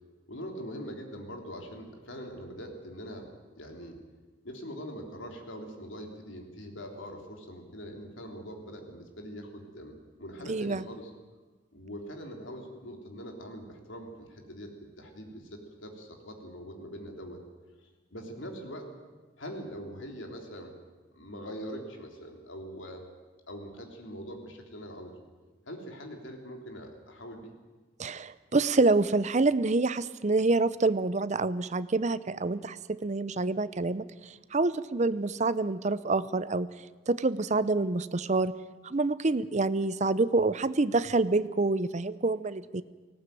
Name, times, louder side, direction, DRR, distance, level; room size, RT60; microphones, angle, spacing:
voice 1, 0.3-3.3 3.6-4.0 4.4-11.1 11.7-14.7 15.0-17.4 18.1-19.0 19.4-20.7 21.1-23.0 23.5-25.1 25.7-27.5, equal, 75° left, 3 dB, 3.5 m, -42 dB
voice 2, 10.5-10.8 28.0-36.7 37.1-38.5 38.8-42.8, right 3 dB, 35° right, 15 dB, 0.6 m, -27 dB
18.5 x 17.5 x 9.2 m, 1.3 s
head